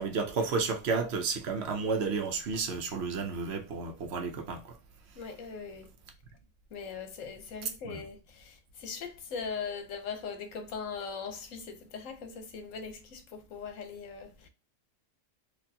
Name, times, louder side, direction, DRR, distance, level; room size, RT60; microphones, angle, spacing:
voice 1, 0.0-4.8 7.6-8.0, right 4 dB, 60° right, 0.8 m, -32 dB
voice 2, 5.2-5.9 6.7-14.5, left 5 dB, 75° left, 1.1 m, -40 dB
4.3 x 2.6 x 2.7 m
omnidirectional pair, 1.4 m